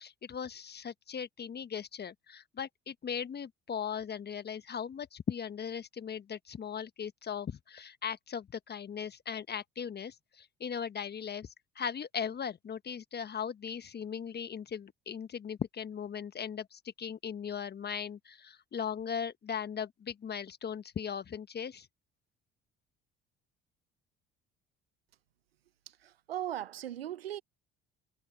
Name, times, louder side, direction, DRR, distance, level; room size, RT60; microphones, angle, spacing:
voice 1, 0.0-21.9, left 7 dB, 35° left, 1.3 m, -38 dB
voice 2, 25.9-27.4, right 12 dB, 85° right, 0.9 m, -38 dB
hypercardioid pair, 60°, 29 cm